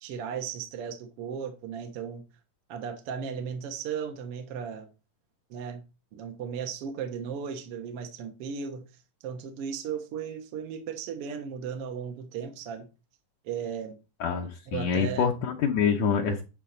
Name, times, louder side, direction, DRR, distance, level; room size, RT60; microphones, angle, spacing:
voice 1, 0.0-2.2 2.7-4.9 5.5-5.8 6.1-8.9 9.2-12.9 13.4-13.9 14.7-15.5, right 7 dB, 55° right, 1.9 m, -36 dB
voice 2, 14.2-16.4, left 6 dB, 70° left, 2.1 m, -26 dB
11.0 x 4.0 x 5.8 m
omnidirectional pair, 3.6 m